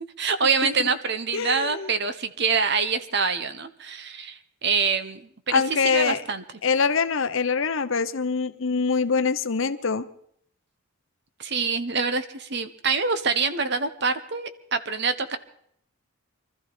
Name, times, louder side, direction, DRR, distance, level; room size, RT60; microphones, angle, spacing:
voice 1, 0.2-5.6 5.9-6.4 11.4-15.4, right 5 dB, 50° right, 11 dB, 1.2 m, -25 dB
voice 2, 1.3-1.9 5.5-6.2 6.6-10.1, left 5 dB, 60° left, 11 dB, 0.8 m, -24 dB
24.0 x 13.5 x 4.3 m, 0.66 s
head